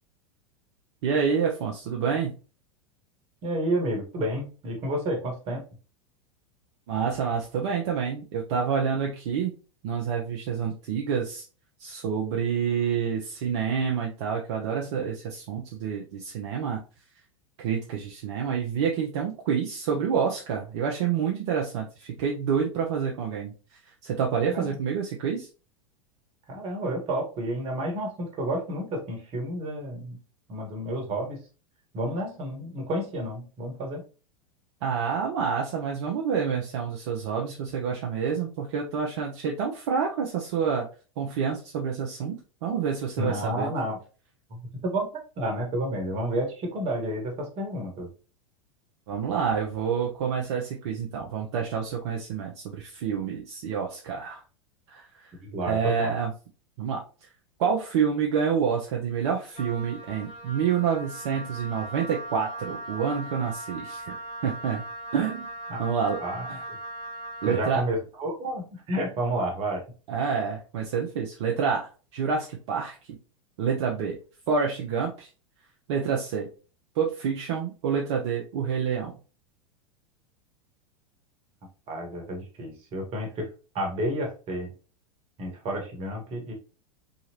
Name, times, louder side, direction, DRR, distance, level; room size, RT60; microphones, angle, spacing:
voice 1, 1.0-2.3 6.9-9.5 9.8-11.4 11.8-16.8 17.6-25.5 34.8-40.9 41.2-43.7 49.1-54.4 54.9-55.3 55.6-56.3 56.8-57.3 57.6-64.8 65.1-65.5 65.8-66.2 66.5-66.6 67.4-67.8 70.1-73.0 73.6-74.2 74.5-75.3 75.9-76.5 76.9-79.2, right 6 dB, 55° right, 0 dB, 0.7 m, -28 dB
voice 2, 3.4-5.6 24.5-24.8 26.5-30.2 30.5-31.4 31.9-34.0 43.2-44.0 44.5-44.6 44.9-45.1 45.4-48.1 55.5-56.1 65.7-65.8 66.2-66.8 67.5-69.8 81.9-83.5 83.7-84.7 85.4-86.5, right 1 dB, 35° right, 2 dB, 1.4 m, -30 dB
Wind instrument woodwind instrument, 59.5-67.8, right 2 dB, 30° left, 1.5 m, -39 dB
3.8 x 3.0 x 2.8 m, 0.35 s
figure-of-eight pair, 90°, 17 cm